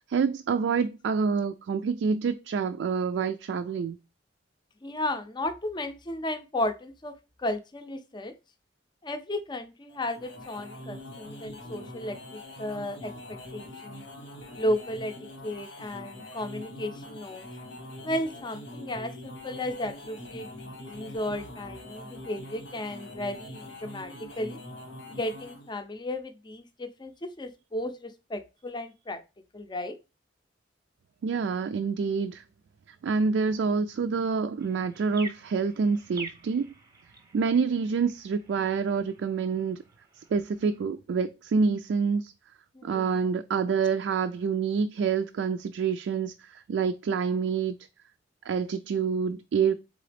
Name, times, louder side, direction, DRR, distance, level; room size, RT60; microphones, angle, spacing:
voice 1, 0.1-4.0 31.2-32.4 32.9-36.7 37.3-39.8 40.3-42.3 42.8-47.8 48.5-49.8, right 5 dB, 80° right, 0.3 m, -27 dB
voice 2, 4.8-8.3 9.0-12.2 12.6-14.0 14.6-15.1 15.4-17.5 18.0-24.6 25.1-29.2 29.5-30.0 42.7-43.2, left 1 dB, 25° left, 0.5 m, -34 dB
sound 1, 9.9-25.7, left 1 dB, 85° left, 1.4 m, -43 dB
sound 2, 34.6-40.8, right 3 dB, 20° right, 0.7 m, -47 dB
3.9 x 3.7 x 3.3 m
head